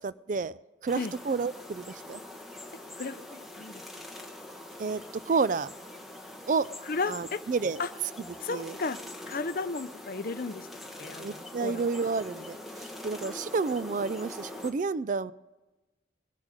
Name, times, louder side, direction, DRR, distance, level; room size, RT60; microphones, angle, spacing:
voice 1, 0.0-2.2 4.8-5.7 6.5-6.7 7.1-7.8 8.5-8.8 11.2-15.3, right 4 dB, 45° right, 17 dB, 0.4 m, -30 dB
sound 1, 0.9-14.7, left 1 dB, ahead, 1.1 m, -44 dB
voice 2, 3.0-3.8 6.9-7.4 7.8-7.9 8.4-9.0 9.3-10.7 11.0-11.8, left 4 dB, 50° left, 13 dB, 0.6 m, -34 dB
21.0 x 7.4 x 4.9 m, 1.1 s
head